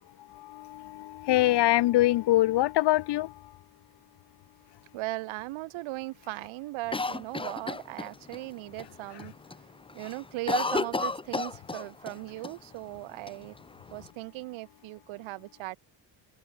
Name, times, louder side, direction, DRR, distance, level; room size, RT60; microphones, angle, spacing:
voice 1, 0.4-3.3, left 16 dB, 60° left, 1.1 m, -24 dB
voice 2, 4.9-9.3 9.9-13.5 13.9-15.8, right 20 dB, 80° right, 4.2 m, -38 dB
Cough, 6.9-8.4 8.8-8.9 9.2-9.6 9.9-12.2 12.4-12.5 13.3-14.1, left 3 dB, 10° left, 1.3 m, -32 dB
open air
cardioid pair, 115°, 47 cm